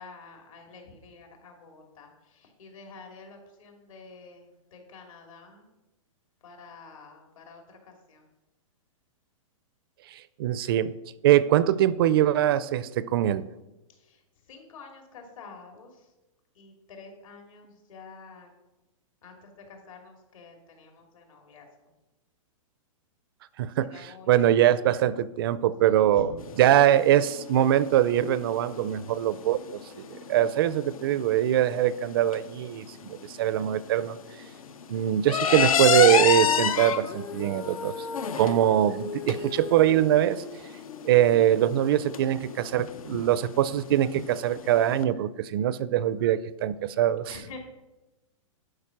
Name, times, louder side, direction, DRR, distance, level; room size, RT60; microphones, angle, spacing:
voice 1, 0.0-5.7 6.4-8.3 13.9-14.2 14.5-16.1 16.5-18.5 19.2-21.7 23.7-24.3 25.6-26.3 47.2-47.6, left 4 dB, 70° left, 3 dB, 2.8 m, -48 dB
voice 2, 10.1-10.9 11.2-13.4 23.6-26.3 26.6-29.6 30.0-34.2 34.9-37.9 38.3-40.4 41.0-47.3, right 12 dB, 45° right, 17 dB, 0.4 m, -23 dB
sound 1, 26.4-45.0, left 8 dB, 85° left, 0.8 m, -30 dB
Female singing, 36.3-42.5, left 5 dB, 10° left, 0.5 m, -40 dB
11.5 x 4.9 x 6.0 m, 1.0 s
hypercardioid pair, 155°, 18 cm